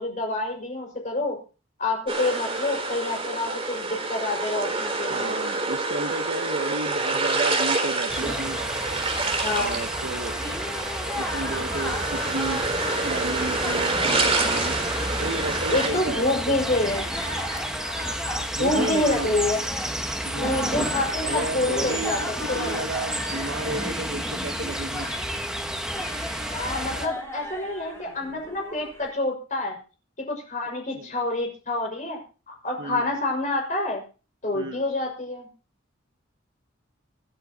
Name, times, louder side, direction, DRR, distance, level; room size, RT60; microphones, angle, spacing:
voice 1, 0.0-1.4 1.8-5.4 9.4-9.8 15.7-17.1 18.6-19.6 20.4-22.2 22.5-22.8 26.5-29.8 30.3-32.2 32.5-34.0 34.4-35.5, left 2 dB, 40° left, 1 dB, 5.9 m, -27 dB
sound 1, 2.1-15.9, right 3 dB, 30° right, 3.7 m, -27 dB
voice 2, 5.1-8.7 9.6-10.4 11.1-12.6 13.0-14.8 15.1-16.6 18.6-19.4 20.2-20.9 21.2-25.1 30.9-31.1 32.8-33.2 34.5-34.8, right 2 dB, 60° right, 4 dB, 1.4 m, -33 dB
sound 2, 8.1-27.1, equal, 5° right, 1.5 m, -31 dB
sound 3, 10.1-29.1, left 1 dB, 15° left, 7.0 m, -37 dB
26.0 x 10.0 x 3.0 m, 0.35 s
head